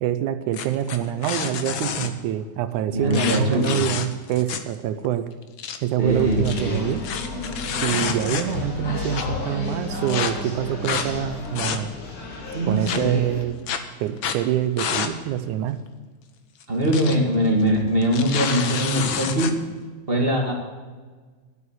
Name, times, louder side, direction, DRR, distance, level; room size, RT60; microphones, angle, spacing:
voice 1, 0.0-5.3 5.8-7.0 7.8-11.9 12.7-13.6 14.0-15.8, right 11 dB, 80° right, 11 dB, 2.2 m, -25 dB
sound 1, 0.5-2.1 3.1-4.7 5.0-5.1 5.4-5.8 6.3-8.7 9.1-9.2 10.1-10.3 10.8-11.1 11.4-12.1 12.9-13.0 13.7-13.8 14.2-14.4 14.8-15.1 15.4-15.5 16.6-17.1 17.4-17.6 18.0-19.5, left 7 dB, 70° left, 1.1 m, -28 dB
voice 2, 2.9-3.8 6.0-6.9 12.5-13.2 16.7-19.5 20.1-20.5, equal, 20° right, 0 dB, 1.9 m, -22 dB
sound 2, 6.0-13.4, left 2 dB, 90° left, 4.9 m, -32 dB
11.0 x 8.4 x 8.0 m, 1.4 s
omnidirectional pair, 3.5 m